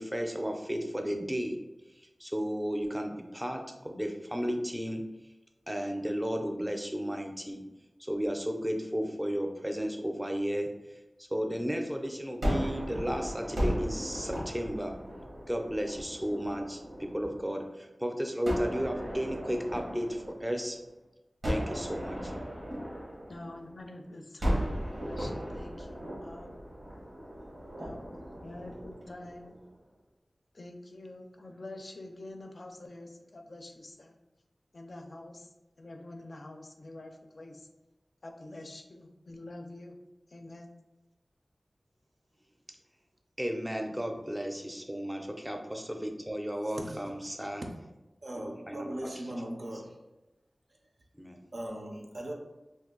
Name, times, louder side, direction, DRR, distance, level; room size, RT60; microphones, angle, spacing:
voice 1, 0.0-1.6 2.2-5.0 5.7-7.6 8.0-10.7 11.3-15.0 15.5-20.8 21.4-22.3 43.4-47.6 48.3-48.9 51.2-51.4, equal, 10° right, 0.5 m, -33 dB
Gunshot gunfire, 12.4-17.5 18.4-20.9 21.4-23.9 24.4-29.6, equal, 90° right, 1.0 m, -36 dB
voice 2, 23.3-24.7 25.0-26.6 27.8-28.0 28.4-29.6 30.5-34.2 34.7-37.7 38.2-40.0 40.3-40.7, left 2 dB, 65° left, 0.4 m, -46 dB
voice 3, 46.6-47.1 47.6-47.7 48.2-50.0 51.5-52.3, right 1 dB, 65° right, 0.5 m, -39 dB
2.6 x 2.2 x 3.7 m
wide cardioid pair, 60°, 0 cm